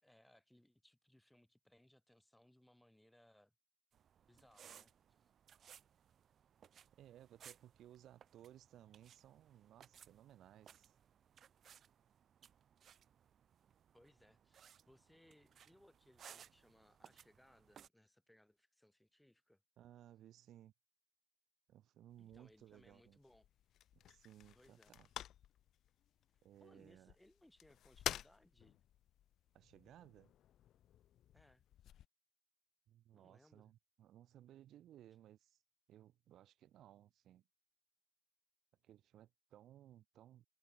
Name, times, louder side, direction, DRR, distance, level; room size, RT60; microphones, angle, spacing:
voice 1, 0.0-3.5 4.3-5.3 13.9-19.6 22.2-23.5 24.5-24.9 26.6-28.8 31.3-31.6 33.1-33.7, left 1 dB, 5° left, 4.5 m, -68 dB
sound 1, 3.9-17.9, right 8 dB, 55° right, 5.9 m, -63 dB
voice 2, 7.0-10.9 19.8-20.7 21.7-23.2 23.9-25.1 26.4-27.2 29.5-30.3 32.9-35.6 35.9-37.5 38.8-40.5, right 12 dB, 85° right, 2.5 m, -61 dB
sound 2, 22.1-32.0, left 11 dB, 75° left, 0.4 m, -51 dB
cardioid pair, 165°, 0 cm